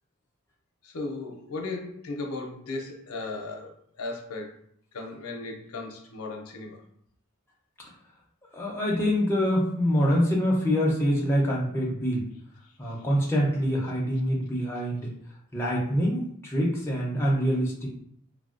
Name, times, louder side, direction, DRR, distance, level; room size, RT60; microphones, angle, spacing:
voice 1, 0.8-4.5 4.9-6.8 12.8-12.9, left 3 dB, 85° left, 2 dB, 0.6 m, -36 dB
voice 2, 8.5-12.3 12.8-15.1 15.5-17.9, equal, 10° left, -4 dB, 0.6 m, -25 dB
3.3 x 2.3 x 2.5 m, 0.68 s
head